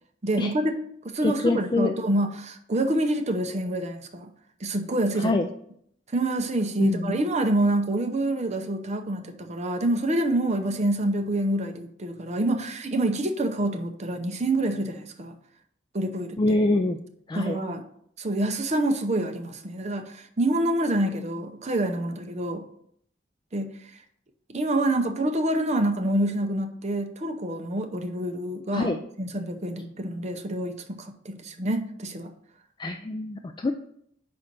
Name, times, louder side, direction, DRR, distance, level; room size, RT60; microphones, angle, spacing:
voice 1, 0.2-4.3 4.6-5.4 6.1-15.3 15.9-16.6 17.3-17.8 18.2-22.6 23.5-23.7 24.5-32.3, right 1 dB, 35° right, 6 dB, 0.7 m, -27 dB
voice 2, 1.2-1.9 5.2-5.5 6.8-7.2 16.4-17.0 17.3-17.6 28.7-29.0 32.8-33.7, left 2 dB, 25° left, 5 dB, 0.3 m, -25 dB
5.3 x 4.3 x 6.0 m, 0.68 s
head